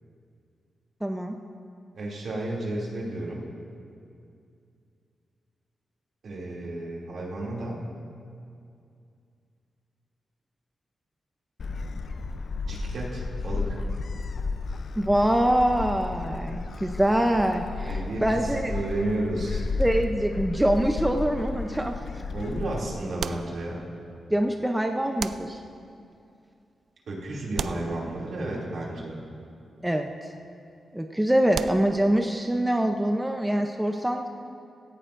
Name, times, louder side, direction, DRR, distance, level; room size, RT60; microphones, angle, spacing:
voice 1, 1.0-1.3 15.0-18.7 19.8-21.9 24.3-25.6 29.8-30.1 30.9-34.3, right 1 dB, 5° right, 4 dB, 0.6 m, -24 dB
voice 2, 1.9-3.5 6.2-7.8 12.6-13.8 17.8-18.2 18.7-19.6 22.3-23.8 27.1-29.2, right 1 dB, 65° right, -4 dB, 2.5 m, -32 dB
Gull seagull, 11.6-22.8, left 4 dB, 55° left, 0.5 m, -33 dB
sound 1, 21.4-21.9 23.2-24.1 25.2-26.0 27.5-28.6 31.5-32.4, right 7 dB, 85° right, 0.3 m, -37 dB
17.0 x 15.5 x 2.5 m, 2.5 s
wide cardioid pair, 125°, 0 cm